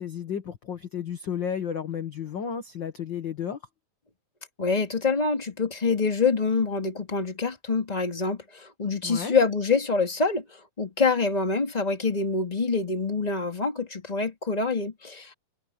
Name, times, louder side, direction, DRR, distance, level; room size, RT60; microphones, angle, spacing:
voice 1, 0.0-3.6 9.0-9.3, left 8 dB, 50° left, 1.5 m, -32 dB
voice 2, 4.6-15.3, left 4 dB, 15° left, 2.3 m, -26 dB
omnidirectional pair, 3.9 m